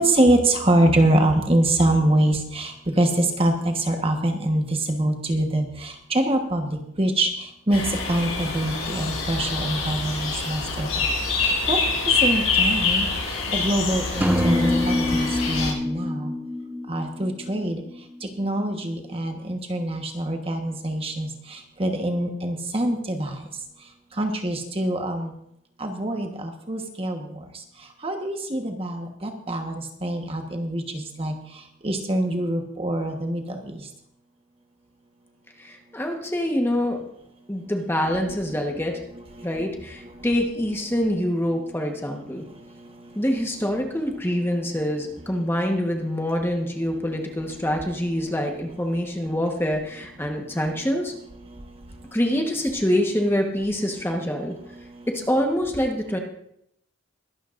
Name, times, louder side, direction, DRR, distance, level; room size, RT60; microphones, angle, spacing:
voice 1, 0.0-7.3 7.7-7.8 8.1-11.0 11.4-11.8 12.2-13.1 13.5-16.3 16.9-17.8 18.4-23.3 24.2-25.3 25.8-27.3 28.0-31.3 31.8-33.8 38.4-38.5 39.1-39.2 39.6-39.7, right 1 dB, 25° right, 4 dB, 1.2 m, -24 dB
sound 1, 7.7-15.7, left 4 dB, 70° left, 6.6 m, -25 dB
sound 2, 14.2-18.0, left 1 dB, 10° right, 0.5 m, -25 dB
voice 2, 35.6-37.0 37.5-39.0 39.4-42.4 43.1-51.1 52.1-54.5 55.1-56.2, equal, 10° left, 2 dB, 1.2 m, -25 dB
22.0 x 12.0 x 2.6 m, 0.74 s
head